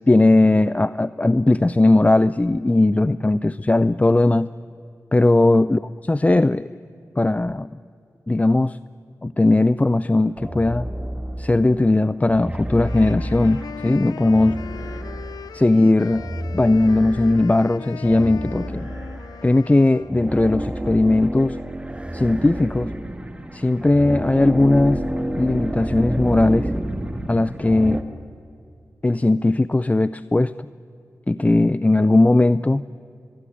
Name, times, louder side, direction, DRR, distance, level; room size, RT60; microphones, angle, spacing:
voice 1, 0.0-4.5 5.1-6.7 7.2-7.7 8.3-8.8 9.2-10.9 11.4-14.6 15.5-16.2 16.5-18.9 19.4-21.6 22.1-22.9 23.5-25.0 25.4-26.7 27.3-28.0 29.0-30.5 31.3-32.8, left 2 dB, 20° left, 16 dB, 0.5 m, -18 dB
sound 1, 10.4-11.7 12.3-15.5 16.1-17.5 18.0-19.5 20.0-28.0, right 1 dB, 15° right, 2.1 m, -29 dB
sound 2, 12.7-20.2, left 7 dB, 90° left, 0.5 m, -39 dB
23.0 x 22.5 x 8.6 m, 2.6 s
cardioid pair, 45°, 6 cm